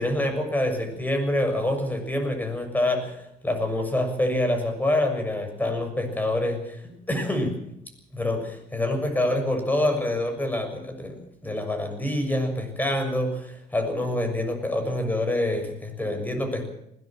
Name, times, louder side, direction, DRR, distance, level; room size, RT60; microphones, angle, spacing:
voice 1, 0.0-7.6 8.1-11.2 11.4-16.7, left 1 dB, 10° left, 6 dB, 6.7 m, -26 dB
20.5 x 18.5 x 7.5 m, 0.80 s
cardioid pair, 110°, 17 cm